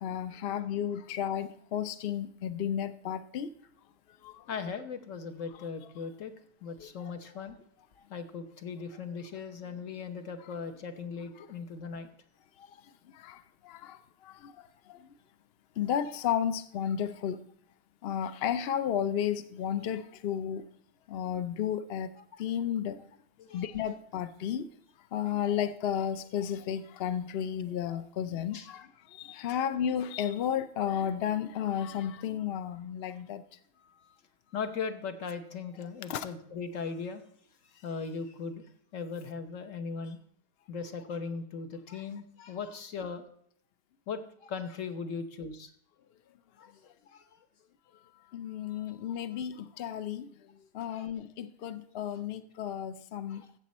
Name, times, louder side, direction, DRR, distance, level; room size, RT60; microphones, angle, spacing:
voice 1, 0.0-3.5 4.2-4.3 6.8-6.9 13.2-13.4 13.6-14.0 14.3-14.5 14.9-15.0 15.8-17.4 18.0-20.6 21.1-22.1 22.4-23.0 23.5-24.7 25.1-28.6 29.2-33.4 36.1-36.3 48.3-50.3 50.7-53.4, left 9 dB, 80° left, 0.5 m, -32 dB
voice 2, 4.5-6.3 6.6-7.6 8.1-12.1 23.4-23.9 28.5-28.9 29.5-29.6 33.8-34.1 34.5-37.2 37.7-40.2 40.7-43.2 44.1-45.7 46.6-47.2 49.1-49.2 50.8-51.1 53.3-53.5, left 5 dB, 55° left, 1.2 m, -39 dB
14.0 x 7.7 x 4.2 m
omnidirectional pair, 1.8 m